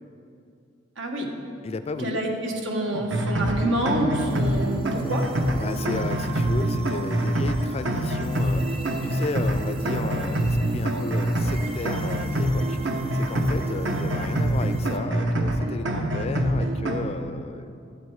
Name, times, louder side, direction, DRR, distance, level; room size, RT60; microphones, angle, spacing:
voice 1, 1.0-1.3 2.0-5.2, right 1 dB, 90° right, 1 dB, 1.5 m, -27 dB
voice 2, 1.6-2.2 5.6-17.7, left 3 dB, 35° left, 11 dB, 0.4 m, -34 dB
sound 1, 2.9-17.1, right 1 dB, 70° right, 0.9 m, -25 dB
sound 2, 4.1-15.0, right 5 dB, 30° right, 0.8 m, -43 dB
12.0 x 7.9 x 4.8 m, 2.5 s
head